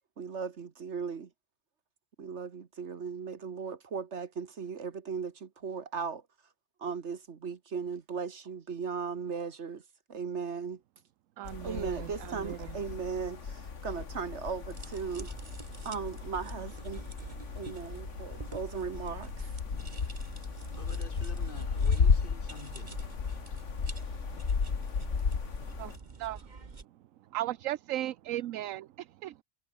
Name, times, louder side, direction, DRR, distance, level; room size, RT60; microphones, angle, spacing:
voice 1, 0.2-1.3 2.2-6.2 6.8-9.8 10.1-10.8 11.6-15.3 15.8-17.0 17.5-19.5, right 5 dB, 50° right, 1.5 m, -37 dB
sound 1, 11.4-26.0, left 5 dB, 55° left, 2.1 m, -34 dB
voice 2, 11.4-12.8 25.8-26.5 27.3-29.4, right 14 dB, 70° right, 1.0 m, -37 dB
sound 2, 14.7-26.8, right 4 dB, 30° right, 1.6 m, -47 dB
voice 3, 20.7-23.0, left 3 dB, 35° left, 3.2 m, -48 dB
omnidirectional pair, 1.5 m